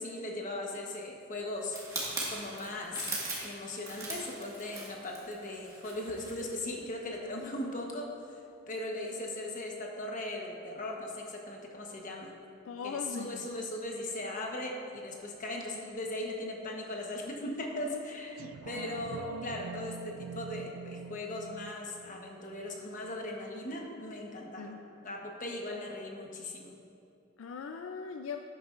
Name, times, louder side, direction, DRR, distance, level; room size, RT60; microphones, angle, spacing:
voice 1, 0.0-1.8 2.3-3.1 3.4-8.1 8.7-12.3 12.8-24.7 25.0-26.7, left 1 dB, 40° left, 0 dB, 1.1 m, -38 dB
sound 1, 1.7-6.4 6.8-7.0, right 2 dB, 15° right, 1.7 m, -40 dB
voice 2, 12.6-13.5 24.6-24.9 27.4-28.4, left 5 dB, 75° left, 6 dB, 0.4 m, -40 dB
sound 2, 18.4-23.4 23.8-23.9, right 5 dB, 85° right, 0.3 m, -45 dB
12.0 x 9.0 x 2.5 m, 2.6 s
head